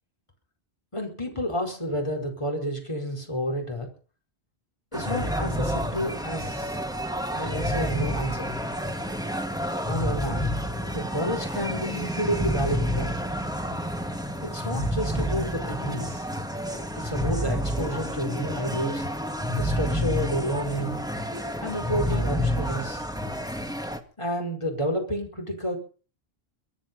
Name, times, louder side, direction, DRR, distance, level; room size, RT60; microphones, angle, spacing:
voice 1, 0.9-3.9 4.9-6.8 7.3-8.5 9.9-10.5 10.9-13.1 14.4-16.2 16.9-19.1 19.6-21.0 21.6-23.0 24.2-25.8, equal, 25° left, 1 dB, 4.8 m, -30 dB
sound 1, 4.9-24.0, equal, 5° right, 1.7 m, -29 dB
24.5 x 10.0 x 5.4 m, 0.38 s
omnidirectional pair, 1.1 m